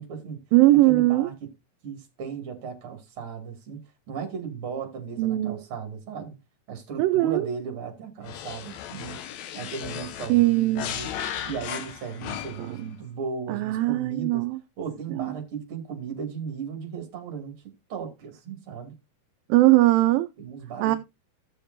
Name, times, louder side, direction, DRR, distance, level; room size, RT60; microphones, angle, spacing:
voice 1, 0.0-0.4 0.9-1.3 1.8-3.8 4.1-6.3 6.7-9.2 9.5-11.1 11.4-14.5 14.8-19.0 20.4-21.0, right 6 dB, 40° right, 2.7 m, -36 dB
voice 2, 0.5-1.3 5.2-5.6 7.0-7.5 10.3-10.9 13.5-14.5 15.1-15.3 19.5-20.3 20.8-21.0, right 18 dB, 80° right, 2.2 m, -20 dB
sound 1, 8.2-12.8, left 10 dB, 85° left, 1.6 m, -36 dB
16.0 x 6.8 x 2.6 m
omnidirectional pair, 4.4 m